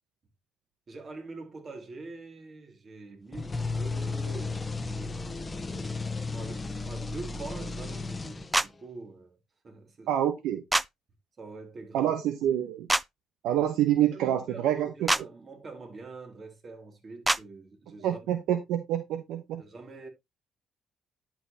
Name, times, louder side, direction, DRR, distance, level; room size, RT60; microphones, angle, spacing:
voice 1, 0.9-5.2 5.5-9.4 9.6-10.2 11.4-12.1 14.1-18.3 19.6-20.1, right 3 dB, 45° right, 3.1 m, -45 dB
sound 1, 3.3-8.8, left 3 dB, 25° left, 0.9 m, -34 dB
sound 2, 8.5-8.7 10.7-10.9 12.9-13.0 15.1-15.2 17.2-17.4, right 1 dB, 10° right, 0.4 m, -24 dB
voice 2, 10.1-10.6 11.9-12.9 13.4-15.1 18.0-19.6, right 11 dB, 85° right, 1.0 m, -27 dB
10.5 x 5.8 x 2.9 m
supercardioid pair, 75°, 0 cm